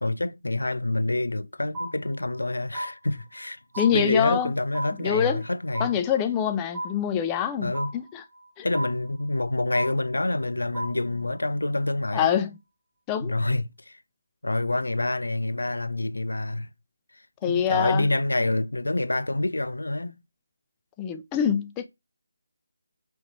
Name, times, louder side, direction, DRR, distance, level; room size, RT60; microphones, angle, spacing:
voice 1, 0.0-3.6 3.9-6.0 7.6-7.9 8.6-12.5 13.2-14.0 14.4-16.7 17.4-20.2, left 2 dB, 85° left, 0.5 m, -27 dB
sound 1, 1.7-2.5 2.7-3.5 3.7-4.5 4.7-5.5 5.7-6.5 6.7-7.5 7.7-8.5 8.7-9.5 9.7-10.5 10.7-11.5, right 1 dB, 25° right, 2.6 m, -35 dB
voice 2, 3.8-4.5 5.0-5.4 5.8-8.2 8.6-8.7 12.1-12.5 13.1-13.3 17.4-18.1 21.0-21.9, left 9 dB, 15° left, 0.4 m, -25 dB
5.6 x 3.1 x 3.0 m
figure-of-eight pair, 160°, 0 cm